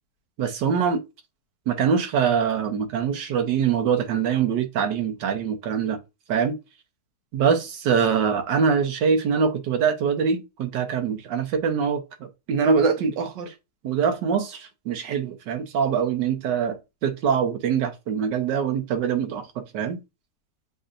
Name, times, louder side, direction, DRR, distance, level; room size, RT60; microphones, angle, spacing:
voice 1, 0.4-1.0 1.7-6.0 6.3-6.6 7.3-13.5 13.8-20.0, right 6 dB, 85° right, 1.4 m, -24 dB
7.6 x 2.6 x 2.5 m
omnidirectional pair, 1.8 m